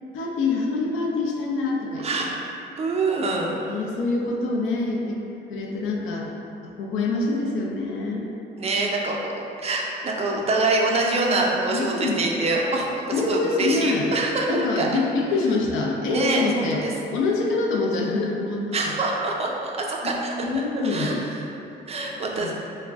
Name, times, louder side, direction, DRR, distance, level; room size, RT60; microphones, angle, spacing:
voice 1, 0.1-2.3 3.5-5.2 5.5-6.3 6.6-8.3 11.7-12.3 13.1-14.1 14.5-16.8 17.1-18.9 20.0-21.2 22.1-22.5, left 3 dB, 90° left, -1 dB, 0.4 m, -25 dB
voice 2, 2.0-2.3 2.8-3.6 8.6-9.3 9.6-14.9 16.1-16.9 18.7-21.4 21.9-22.5, right 2 dB, 30° right, -1 dB, 0.4 m, -25 dB
2.4 x 2.1 x 3.3 m, 2.9 s
cardioid pair, 90°, 20 cm